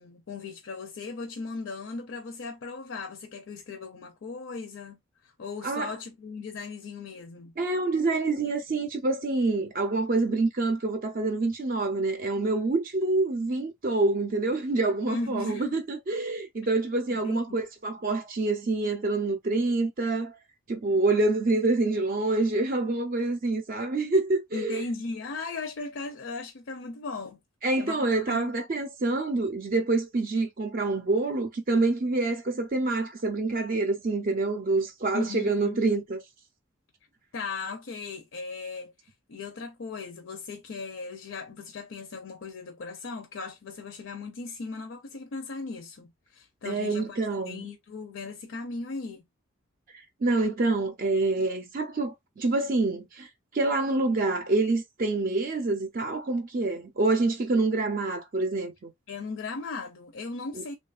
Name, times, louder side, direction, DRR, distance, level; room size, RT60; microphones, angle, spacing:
voice 1, 0.0-7.5 15.1-15.8 17.1-17.6 24.5-27.4 27.8-28.5 35.1-35.8 37.3-47.2 47.5-49.2 59.1-60.8, left 3 dB, 60° left, 0.5 m, -37 dB
voice 2, 7.6-20.4 20.7-24.8 27.6-36.2 46.6-47.7 50.2-58.9, right 3 dB, 40° right, 0.4 m, -27 dB
2.9 x 2.3 x 2.3 m
head